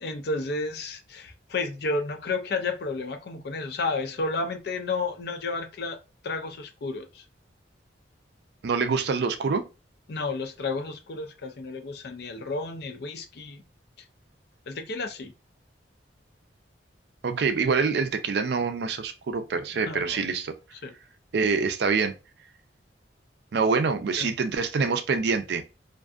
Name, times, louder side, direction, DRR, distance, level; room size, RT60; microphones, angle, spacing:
voice 1, 0.0-6.0 6.2-7.2 10.1-13.6 14.7-15.3 19.8-20.2 20.8-20.9 24.2-24.3, left 3 dB, 60° left, 0.4 m, -31 dB
voice 2, 8.6-9.6 17.2-20.5 21.3-22.1 23.5-25.6, right 5 dB, 65° right, 0.4 m, -25 dB
2.5 x 2.4 x 2.4 m
head